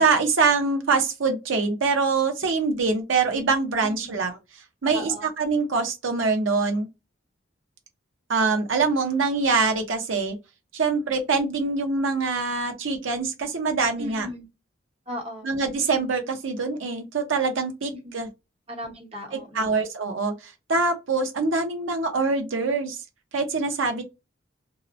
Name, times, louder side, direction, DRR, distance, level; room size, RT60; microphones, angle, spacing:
voice 1, 0.0-4.3 4.8-6.9 8.3-10.4 10.7-14.3 15.4-18.3 19.3-23.0 23.3-24.0, right 4 dB, 85° right, 0.7 m, -24 dB
voice 2, 3.8-4.1 4.9-5.3 14.0-14.4 15.1-15.5 17.9-18.2 18.7-19.8, equal, 30° right, 0.9 m, -37 dB
2.7 x 2.0 x 2.5 m
head